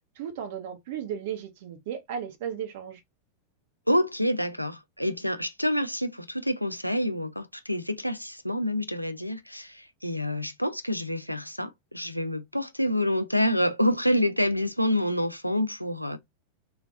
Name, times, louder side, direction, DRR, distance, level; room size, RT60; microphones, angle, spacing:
voice 1, 0.2-3.0, right 8 dB, 55° right, 0.9 m, -35 dB
voice 2, 3.9-16.2, equal, 90° left, 0.4 m, -27 dB
3.5 x 3.1 x 2.3 m
figure-of-eight pair, 90°, 0 cm